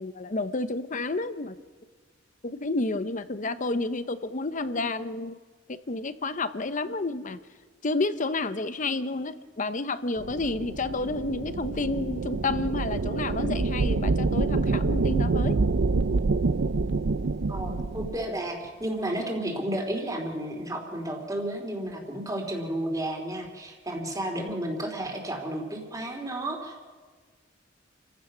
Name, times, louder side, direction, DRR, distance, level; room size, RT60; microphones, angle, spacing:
voice 1, 0.0-1.5 2.6-5.4 5.9-7.4 7.8-15.6, left 3 dB, 40° left, 13 dB, 0.8 m, -30 dB
sound 1, 10.2-18.2, right 3 dB, 75° right, 0.6 m, -27 dB
voice 2, 17.5-26.8, right 1 dB, 20° right, 2 dB, 3.3 m, -32 dB
29.0 x 15.5 x 6.2 m, 1.5 s
head